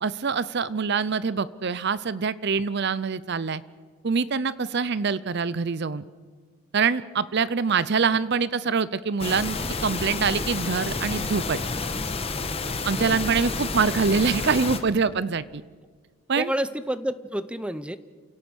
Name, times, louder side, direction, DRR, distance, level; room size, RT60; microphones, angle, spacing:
voice 1, 0.0-3.6 4.0-6.0 6.7-11.6 12.8-15.6 16.3-16.5, right 5 dB, 50° right, 17 dB, 0.6 m, -25 dB
sound 1, 9.2-14.8, left 3 dB, 25° left, 1.4 m, -30 dB
voice 2, 12.9-13.6 16.4-18.0, right 1 dB, 5° right, 14 dB, 0.6 m, -30 dB
28.5 x 17.5 x 6.3 m, 1.5 s
head